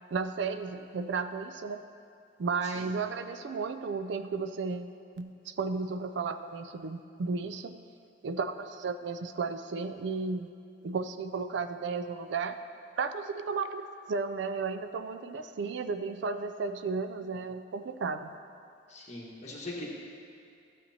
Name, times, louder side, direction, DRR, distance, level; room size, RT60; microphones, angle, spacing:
voice 1, 0.1-1.8 2.4-7.8 8.2-10.5 10.8-12.6 13.0-18.3, right 4 dB, 65° right, 9 dB, 0.4 m, -34 dB
voice 2, 18.9-19.9, left 1 dB, 35° left, -4 dB, 1.5 m, -41 dB
13.5 x 7.3 x 2.8 m, 2.5 s
head